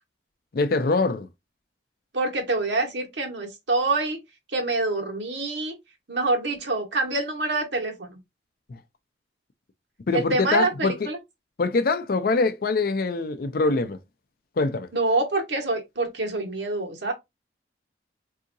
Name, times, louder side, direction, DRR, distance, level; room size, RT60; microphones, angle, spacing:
voice 1, 0.5-1.3 8.7-8.8 10.1-11.1 11.6-14.0 14.6-14.9, left 3 dB, 55° left, 0.5 m, -24 dB
voice 2, 2.1-4.2 4.5-5.8 6.1-8.2 10.1-11.2 14.9-17.1, right 2 dB, 80° right, 1.2 m, -26 dB
3.6 x 2.8 x 2.6 m
head